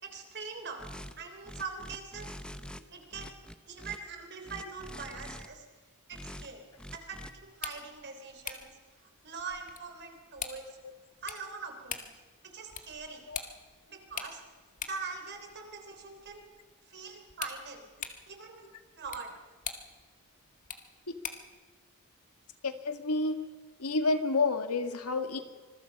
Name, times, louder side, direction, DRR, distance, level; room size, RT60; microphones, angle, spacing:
voice 1, 0.0-2.3 2.9-3.3 3.7-5.6 6.1-6.7 6.9-8.7 9.2-10.7 11.2-12.1 12.4-13.3 13.9-14.4 14.9-16.5 16.9-17.9 18.3-18.6 19.0-19.3, right 5 dB, 50° right, 5 dB, 3.6 m, -42 dB
sound 1, 0.8-1.1 1.4-2.8 3.1-4.0 4.4-5.5 6.1-6.5 6.8-7.3, equal, 5° left, 0.9 m, -44 dB
sound 2, 7.4-21.6, left 7 dB, 35° left, 1.7 m, -45 dB
voice 2, 22.6-23.4 23.8-25.4, left 3 dB, 85° left, 8 dB, 1.8 m, -29 dB
26.0 x 21.5 x 5.4 m, 1.4 s
head